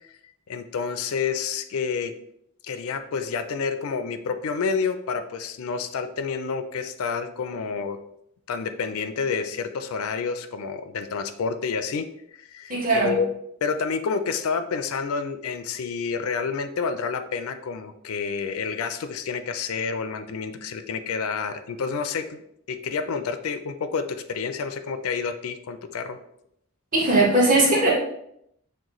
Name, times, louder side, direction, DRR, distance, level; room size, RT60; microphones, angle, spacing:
voice 1, 0.5-2.1 2.6-8.0 8.5-12.1 12.4-13.3 13.6-22.4 22.7-26.2, left 5 dB, 75° left, 9 dB, 0.4 m, -29 dB
voice 2, 12.7-13.1 26.9-27.9, right 2 dB, 35° right, -4 dB, 1.2 m, -19 dB
6.3 x 2.1 x 3.0 m, 0.74 s
head